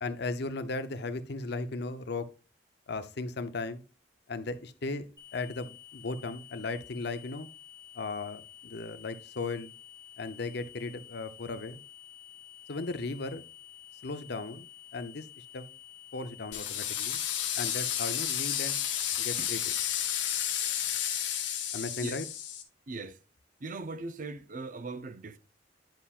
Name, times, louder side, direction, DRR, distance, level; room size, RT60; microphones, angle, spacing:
voice 1, 0.0-2.3 2.9-3.8 4.3-5.1 5.3-7.5 7.9-9.7 10.2-11.8 12.7-13.5 14.0-14.7 14.9-15.2 15.5-15.7 16.1-17.2 17.6-18.8 19.2-19.6 21.7-22.3, left 3 dB, 60° left, 0.7 m, -36 dB
sound 1, 5.2-16.6, left 11 dB, 20° left, 1.6 m, -51 dB
sound 2, 16.5-22.6, left 10 dB, 75° left, 1.2 m, -32 dB
voice 2, 22.9-23.2 23.6-25.4, right 3 dB, 45° right, 0.6 m, -39 dB
10.5 x 5.6 x 2.4 m
head